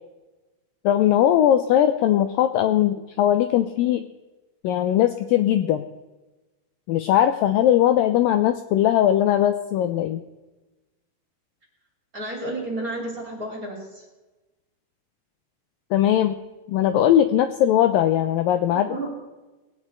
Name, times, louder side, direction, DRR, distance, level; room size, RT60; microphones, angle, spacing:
voice 1, 0.8-4.0 4.6-5.8 6.9-10.2 15.9-16.3 16.7-18.9, left 11 dB, 85° left, 9 dB, 2.0 m, -19 dB
voice 2, 12.1-14.1 18.7-19.1, right 2 dB, 25° right, -2 dB, 3.0 m, -32 dB
20.5 x 9.8 x 4.4 m, 1.1 s
omnidirectional pair, 4.7 m